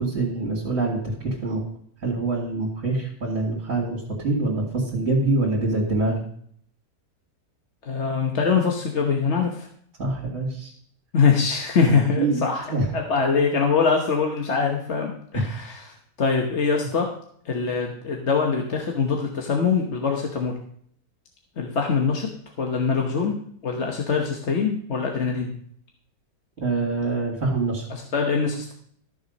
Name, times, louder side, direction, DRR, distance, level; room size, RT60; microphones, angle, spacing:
voice 1, 0.0-1.6 2.0-6.2 10.0-10.7 11.9-12.4 12.7-12.9 15.3-15.5 26.6-27.9, right 2 dB, 45° right, -4 dB, 2.8 m, -25 dB
voice 2, 7.8-9.7 11.1-12.7 12.9-17.1 17.4-20.6 21.6-22.3 22.6-25.5 27.9-28.7, left 5 dB, 45° left, 1 dB, 1.3 m, -23 dB
13.5 x 7.1 x 5.3 m, 0.63 s
omnidirectional pair, 1.9 m